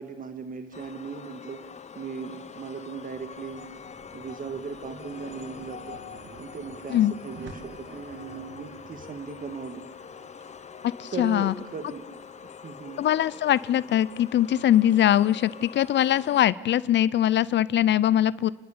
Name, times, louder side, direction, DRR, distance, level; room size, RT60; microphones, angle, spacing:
voice 1, 0.0-1.6 2.0-3.7 4.1-6.0 6.4-9.8 11.1-13.0, right 5 dB, 45° right, 8 dB, 1.8 m, -38 dB
sound 1, 0.7-16.4, left 6 dB, 35° left, 0.9 m, -44 dB
sound 2, 2.5-12.9, right 5 dB, 75° right, 2.5 m, -50 dB
voice 2, 11.0-11.5 13.0-18.5, left 11 dB, 65° left, 18 dB, 0.6 m, -22 dB
29.5 x 12.0 x 8.7 m, 1.3 s
cardioid pair, 90°, 20 cm